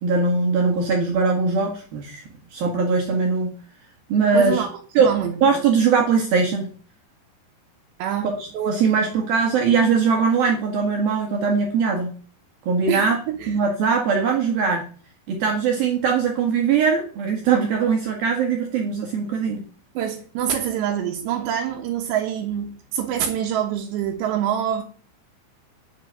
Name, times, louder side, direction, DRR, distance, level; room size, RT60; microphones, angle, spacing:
voice 1, 0.0-3.5 4.1-4.6 4.9-5.1 5.4-6.7 8.2-12.1 12.7-13.2 13.5-14.8 15.3-19.6, right 5 dB, 65° right, 3.3 m, -21 dB
voice 2, 4.3-4.7 5.0-5.4 8.0-8.4 12.9-13.6 20.0-24.8, right 9 dB, 80° right, 3.5 m, -25 dB
10.5 x 7.5 x 8.1 m
omnidirectional pair, 5.0 m